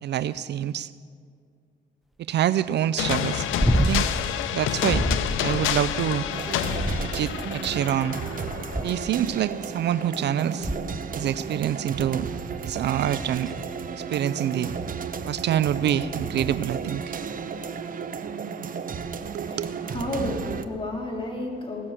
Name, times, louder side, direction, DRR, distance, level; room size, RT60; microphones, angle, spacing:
voice 1, 0.0-0.9 2.3-3.5 3.8-4.1 4.5-5.1 5.4-6.2 7.0-8.2 8.8-10.7 11.1-12.3 12.6-13.5 14.0-14.7 15.3-17.0 19.3-19.8, right 10 dB, 60° right, 15 dB, 0.4 m, -26 dB
sound 1, 3.0-9.5, left 9 dB, 85° left, 0.7 m, -29 dB
sound 2, 3.6-4.2 4.9-5.4 6.8-7.5 8.7-9.2 10.6-11.1 13.5-13.6, equal, ahead, 0.4 m, -26 dB
sound 3, 6.3-20.6, right 6 dB, 45° right, 0.8 m, -33 dB
voice 2, 19.4-21.9, left 1 dB, 25° left, -1 dB, 2.9 m, -32 dB
17.0 x 6.7 x 7.2 m, 2.1 s
cardioid pair, 90°, 20 cm